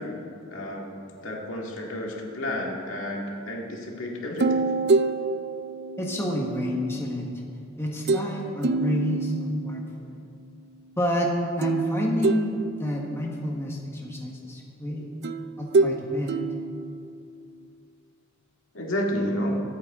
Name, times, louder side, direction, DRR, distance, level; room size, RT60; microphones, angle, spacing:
voice 1, 0.0-4.6 18.7-19.6, equal, 70° left, -1 dB, 2.1 m, -31 dB
sound 1, 4.4-6.7 8.1-8.4 8.6-9.9 11.6-13.3 15.2-17.5, right 3 dB, 55° right, 0.4 m, -26 dB
voice 2, 6.0-7.3 7.8-10.2 11.0-15.1 15.6-16.3, equal, 15° left, -2 dB, 1.3 m, -29 dB
23.5 x 8.5 x 3.7 m, 2.5 s
head